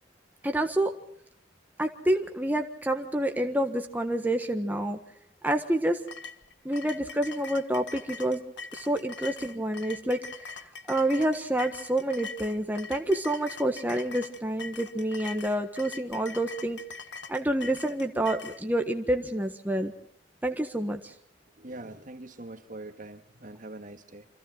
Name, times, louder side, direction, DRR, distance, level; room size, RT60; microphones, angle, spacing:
voice 1, 0.4-0.9 1.8-5.0 5.4-6.0 6.6-8.4 8.7-16.8 17.3-19.9 20.4-21.1, right 1 dB, 10° right, 4 dB, 1.4 m, -28 dB
sound 1, 6.1-18.6, left 4 dB, 70° left, 1.6 m, -42 dB
voice 2, 21.6-24.3, right 2 dB, 45° right, 8 dB, 1.9 m, -43 dB
28.5 x 26.0 x 4.1 m, 0.66 s
head